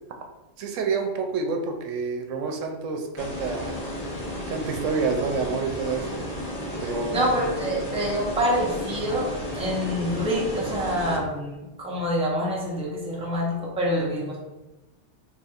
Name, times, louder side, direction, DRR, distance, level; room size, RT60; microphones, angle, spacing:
voice 1, 0.6-3.8 4.5-6.2 6.8-7.2, right 4 dB, 85° right, 4 dB, 0.9 m, -28 dB
sound 1, 3.2-11.2, equal, 40° left, 0.8 m, -33 dB
voice 2, 6.8-14.4, equal, 5° right, -5 dB, 0.6 m, -26 dB
4.1 x 2.9 x 2.4 m, 1.1 s
omnidirectional pair, 1.3 m